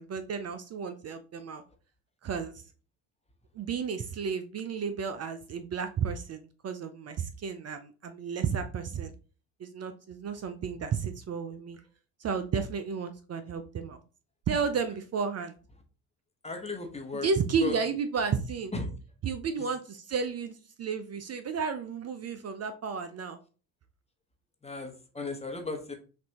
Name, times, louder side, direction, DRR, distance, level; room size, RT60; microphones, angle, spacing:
voice 1, 0.0-1.6 2.2-2.5 3.5-9.1 9.6-11.8 12.2-14.0 14.5-15.6 17.1-18.7 19.2-23.4, right 6 dB, 35° right, 9 dB, 0.5 m, -32 dB
voice 2, 16.4-17.3 17.6-17.8 18.7-18.9 24.6-25.9, left 3 dB, 15° left, 4 dB, 1.2 m, -35 dB
5.9 x 2.6 x 2.9 m, 0.36 s
hypercardioid pair, 65°, 48 cm